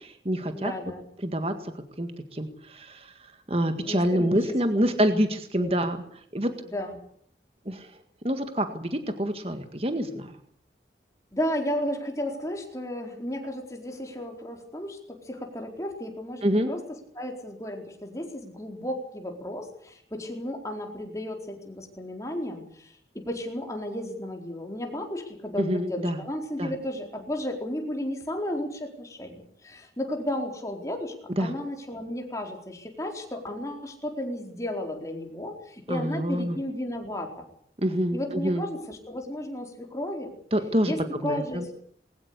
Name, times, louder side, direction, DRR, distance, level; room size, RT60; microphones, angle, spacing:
voice 1, 0.0-0.7 1.2-1.7 2.0-6.0 6.3-6.5 7.7-7.9 8.2-10.3 16.4-16.7 25.6-26.2 26.6-26.7 31.3-31.5 35.9-36.6 37.8-38.7 40.5-40.9 41.2-41.7, equal, 35° right, 7 dB, 1.9 m, -27 dB
voice 2, 0.5-1.1 3.8-4.4 4.8-4.9 5.6-5.8 6.7-7.0 11.3-16.8 17.1-37.5 38.1-40.3 40.8-41.8, left 1 dB, 20° left, 2 dB, 4.4 m, -34 dB
21.5 x 19.0 x 8.4 m, 0.63 s
head